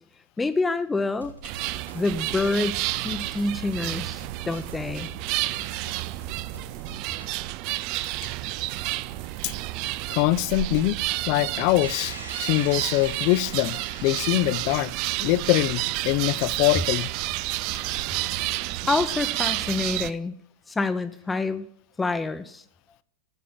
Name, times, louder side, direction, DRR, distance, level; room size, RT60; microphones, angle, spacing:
voice 1, 0.4-1.3 1.9-5.1 18.9-20.3 20.7-21.6 22.0-22.6, left 3 dB, 10° left, 0.8 m, -27 dB
sound 1, 1.1-7.4, left 1 dB, 85° left, 3.5 m, -48 dB
sound 2, 1.4-20.1, right 18 dB, 45° right, 0.5 m, -30 dB
voice 2, 10.1-11.0 11.3-14.9 15.2-17.1, left 16 dB, 45° left, 0.6 m, -23 dB
sound 3, 11.8-16.6, right 2 dB, 90° right, 5.9 m, -43 dB
13.5 x 8.3 x 7.3 m
figure-of-eight pair, 90°, 0 cm